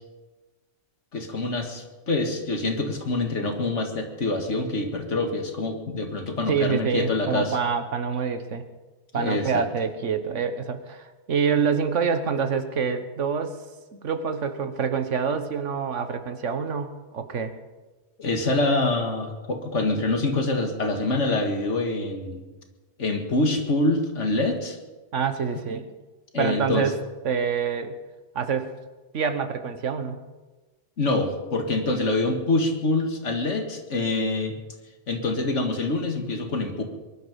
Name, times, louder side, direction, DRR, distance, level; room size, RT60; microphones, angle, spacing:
voice 1, 1.1-7.6 9.1-9.6 18.2-22.4 23.0-24.8 26.3-26.9 31.0-34.5 35.1-36.8, left 2 dB, 75° left, 4 dB, 2.2 m, -25 dB
voice 2, 6.4-8.6 9.1-13.6 14.0-17.5 25.1-25.9 26.4-26.9 27.2-28.0 28.3-28.7 29.1-30.2, right 6 dB, 80° right, 9 dB, 1.5 m, -26 dB
22.5 x 11.5 x 5.3 m, 1.2 s
omnidirectional pair, 1.2 m